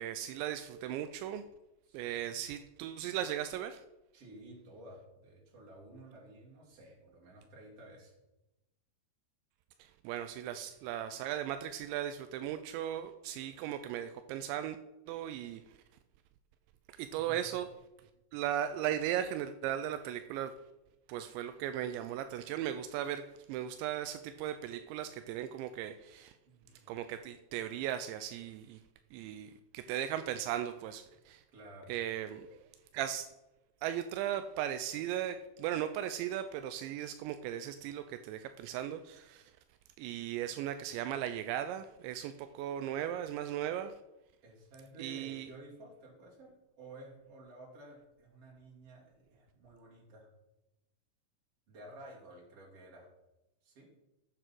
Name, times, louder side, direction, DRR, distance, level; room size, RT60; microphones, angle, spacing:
voice 1, 0.0-1.4 1.9-3.8 9.8-14.8 15.1-15.8 16.9-17.7 18.3-20.5 21.1-26.4 26.9-28.8 29.1-31.4 31.9-32.6 32.9-33.3 33.8-39.5 40.0-44.0 45.0-45.5, right 11 dB, 85° right, 10 dB, 2.8 m, -37 dB
voice 2, 1.9-2.4 4.1-8.1 10.5-10.8 17.1-17.6 26.5-27.0 31.1-31.2 31.5-31.9 44.4-50.3 51.7-53.1 53.6-53.9, right 1 dB, 35° right, -3 dB, 3.7 m, -53 dB
12.5 x 8.9 x 4.5 m, 0.96 s
omnidirectional pair, 5.1 m